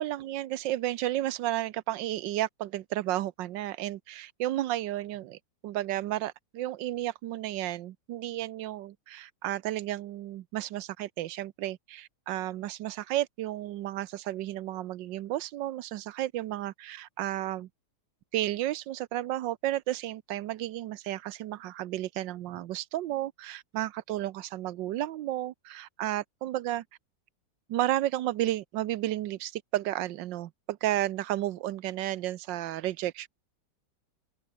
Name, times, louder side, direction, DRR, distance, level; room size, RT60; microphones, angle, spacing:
voice 1, 0.0-17.7 18.3-26.8 27.7-33.3, right 14 dB, 75° right, 1.4 m, -32 dB
open air
omnidirectional pair, 2.1 m